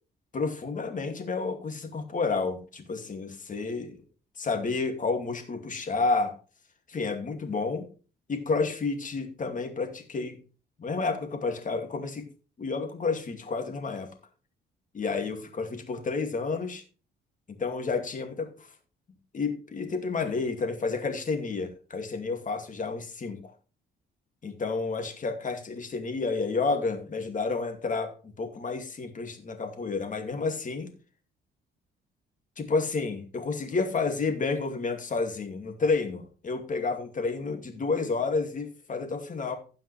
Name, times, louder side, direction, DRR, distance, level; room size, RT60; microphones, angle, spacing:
voice 1, 0.3-4.0 4.4-6.3 6.9-7.9 8.3-10.4 10.8-12.3 12.6-14.1 14.9-16.8 17.5-18.7 19.3-23.5 24.4-30.9 32.6-39.5, left 4 dB, 40° left, 6 dB, 2.4 m, -30 dB
16.0 x 5.7 x 3.3 m, 0.35 s
cardioid pair, 90°, 20 cm